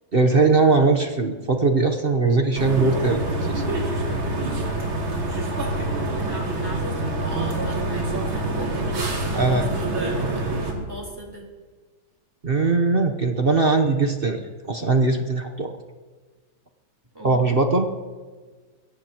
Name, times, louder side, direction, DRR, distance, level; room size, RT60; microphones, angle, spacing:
voice 1, 0.1-3.6 9.3-9.7 12.4-14.4 14.7-15.7 17.2-17.9, right 3 dB, 45° right, 5 dB, 0.8 m, -20 dB
sound 1, 2.5-10.7, right 2 dB, 75° right, 3.4 m, -26 dB
voice 2, 6.2-11.4 17.1-17.4, right 1 dB, 10° right, -2 dB, 3.7 m, -37 dB
22.5 x 17.0 x 3.0 m, 1.4 s
omnidirectional pair, 2.2 m